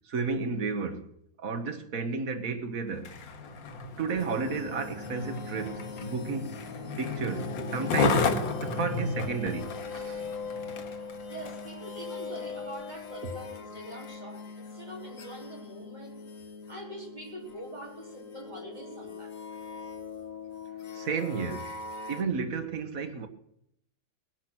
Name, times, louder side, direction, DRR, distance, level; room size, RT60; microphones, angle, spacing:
voice 1, 0.1-1.1 1.4-3.1 4.0-6.6 7.0-8.3 8.6-10.2 20.9-21.7 22.1-23.3, right 5 dB, 50° right, 1.7 m, -32 dB
Skateboard, 2.9-11.7 12.4-12.5, left 3 dB, 85° left, 2.1 m, -33 dB
sound 1, 4.1-22.2, left 4 dB, 50° left, 1.6 m, -41 dB
voice 2, 10.8-16.2 16.7-19.3, right 1 dB, 20° right, 4.1 m, -44 dB
19.5 x 11.0 x 6.1 m
omnidirectional pair, 2.0 m